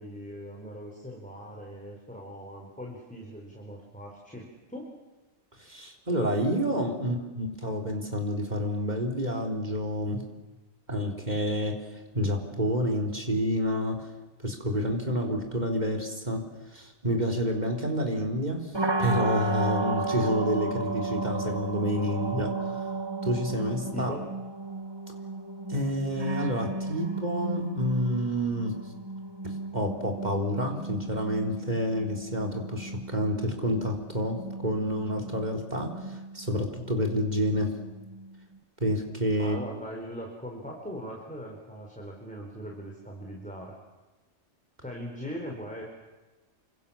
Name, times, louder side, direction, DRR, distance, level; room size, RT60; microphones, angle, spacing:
voice 1, 0.0-4.9 7.0-7.4 23.9-24.2 39.4-43.8 44.8-45.8, equal, 5° left, -1 dB, 4.6 m, -40 dB
voice 2, 5.6-10.2 10.9-11.9 12.1-14.1 14.4-18.7 19.0-22.6 23.2-24.1 25.7-28.8 29.4-37.8 38.8-39.6, equal, 35° right, 2 dB, 4.1 m, -29 dB
sound 1, 18.7-38.6, right 3 dB, 20° right, 1.7 m, -34 dB
29.0 x 26.0 x 7.3 m, 1.1 s
omnidirectional pair, 1.2 m